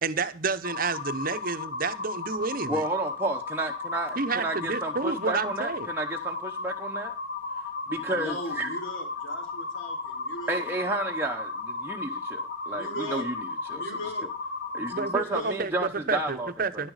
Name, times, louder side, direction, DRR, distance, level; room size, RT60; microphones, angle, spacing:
voice 1, 0.0-2.8 4.2-5.9 14.9-16.9, right 4 dB, 45° right, 0.8 m, -30 dB
sound 1, 0.6-15.1, left 3 dB, 55° left, 2.9 m, -35 dB
voice 2, 2.7-7.1 7.9-8.7 10.5-13.9 14.7-16.8, right 2 dB, 10° right, 0.9 m, -32 dB
voice 3, 8.1-10.6 12.7-13.3 13.7-14.3 15.1-15.6, equal, 70° left, 3.8 m, -38 dB
11.0 x 10.5 x 4.8 m
head